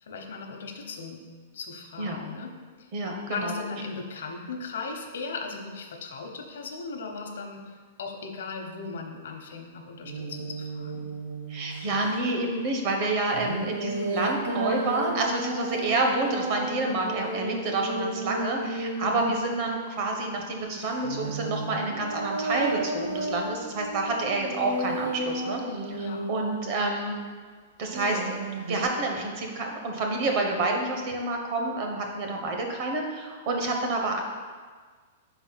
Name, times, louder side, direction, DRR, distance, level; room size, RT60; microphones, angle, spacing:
voice 1, 0.1-1.2 1.5-2.9 3.3-11.1 13.3-13.7 19.0-19.3 25.9-26.3, left 4 dB, 80° left, 3 dB, 0.9 m, -37 dB
voice 2, 2.9-3.5 11.5-27.2 27.8-34.2, right 2 dB, 35° right, 2 dB, 0.9 m, -28 dB
sound 1, 10.0-12.1 13.3-20.1 20.8-27.2 27.9-28.9, right 2 dB, 80° right, 0.9 m, -33 dB
4.6 x 4.0 x 5.7 m, 1.5 s
supercardioid pair, 170°, 0 cm